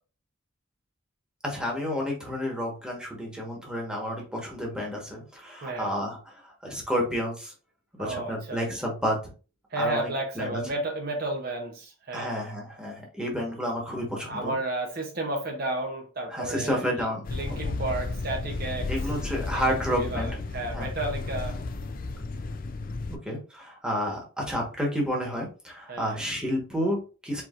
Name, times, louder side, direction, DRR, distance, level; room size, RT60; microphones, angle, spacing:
voice 1, 1.4-7.5 8.0-9.2 9.8-10.6 12.1-14.5 16.3-17.2 17.5-17.6 18.9-20.3 20.7-20.9 23.1-27.4, equal, 5° right, 1.3 m, -30 dB
voice 2, 5.6-5.9 8.0-8.7 9.7-12.3 14.3-16.8 17.3-18.9 19.5-21.6 25.9-26.2, right 2 dB, 50° right, 0.8 m, -32 dB
sound 1, 17.2-23.2, left 3 dB, 45° left, 0.4 m, -33 dB
4.6 x 4.3 x 2.5 m
head